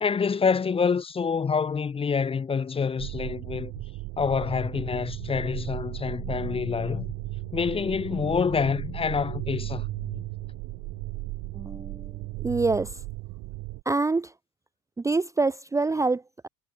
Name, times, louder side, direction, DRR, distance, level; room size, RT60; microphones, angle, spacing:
voice 1, 0.0-3.7 4.2-7.0 7.5-9.9, left 5 dB, 15° left, 1.1 m, -27 dB
sound 1, 3.0-13.8, right 23 dB, 60° right, 0.8 m, -36 dB
sound 2, 5.4-11.8, left 13 dB, 40° left, 3.5 m, -49 dB
voice 2, 11.5-13.0 13.9-14.3 15.0-16.5, right 3 dB, 10° right, 0.8 m, -26 dB
cardioid pair, 175°, 33 cm